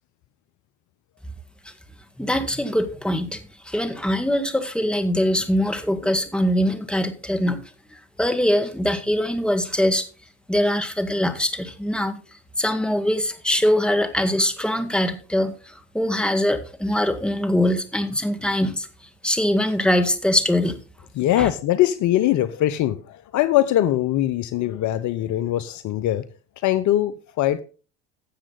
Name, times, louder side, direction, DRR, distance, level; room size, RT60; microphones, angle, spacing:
voice 1, 2.2-7.6 7.9-10.1 10.5-12.2 12.6-18.9 19.2-20.7 21.4-21.5, left 1 dB, 5° left, 1.9 m, -22 dB
voice 2, 21.2-26.2 26.6-27.6, left 13 dB, 55° left, 0.8 m, -22 dB
13.0 x 7.6 x 4.0 m
hypercardioid pair, 75°, 35 cm